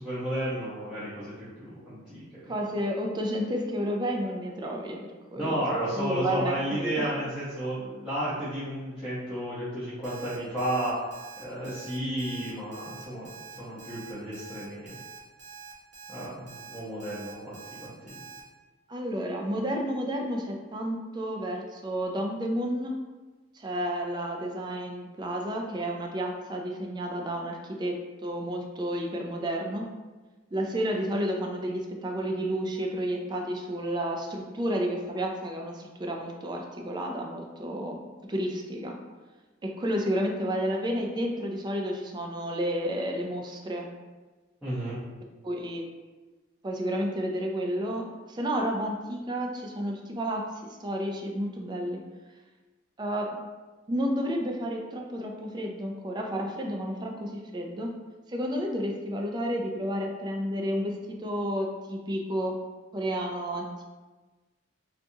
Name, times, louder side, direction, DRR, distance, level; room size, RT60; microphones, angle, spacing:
voice 1, 0.0-2.5 5.4-11.0 11.4-13.3 13.6-15.0 16.1-18.2 44.6-45.0, right 1 dB, 5° right, -13 dB, 0.7 m, -32 dB
voice 2, 2.5-5.5 5.9-7.1 18.9-23.0 23.5-29.9 30.5-38.0 38.3-39.0 39.6-43.9 45.4-45.8 46.6-52.0 53.0-53.4 53.9-57.9 58.3-62.6 62.9-63.8, equal, 20° right, 1 dB, 0.3 m, -31 dB
Alarm, 10.0-18.4, right 6 dB, 65° right, 0.7 m, -46 dB
4.0 x 2.3 x 2.7 m, 1.2 s
head